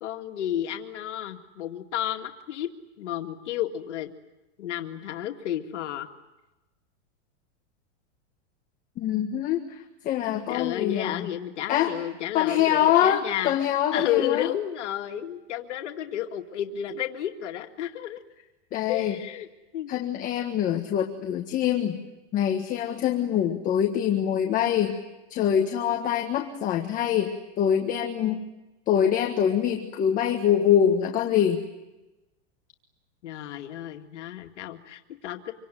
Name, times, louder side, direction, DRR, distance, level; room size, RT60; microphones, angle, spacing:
voice 1, 0.0-2.7 3.0-4.1 4.6-6.1 10.5-13.5 13.9-18.2 18.9-19.5 19.7-19.9 33.2-35.5, left 11 dB, 80° left, 4 dB, 2.3 m, -31 dB
voice 2, 9.0-11.3 11.7-11.9 12.3-14.5 18.7-19.1 19.9-22.0 22.3-25.0 25.3-28.4 28.9-31.7, left 9 dB, 25° left, 2 dB, 1.5 m, -24 dB
26.5 x 24.5 x 9.3 m, 1.0 s
supercardioid pair, 165°, 35 cm